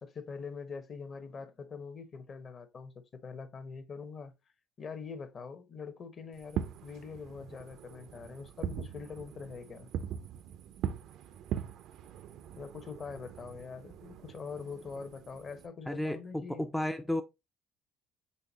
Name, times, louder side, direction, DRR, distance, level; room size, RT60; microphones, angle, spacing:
voice 1, 0.0-4.3 4.8-9.9 12.6-16.7, left 5 dB, 40° left, 0.9 m, -44 dB
Fireworks, 6.4-15.7, right 9 dB, 70° right, 0.4 m, -41 dB
voice 2, 15.9-17.2, left 1 dB, 5° left, 0.3 m, -33 dB
5.6 x 3.4 x 2.8 m
cardioid pair, 120°, 0 cm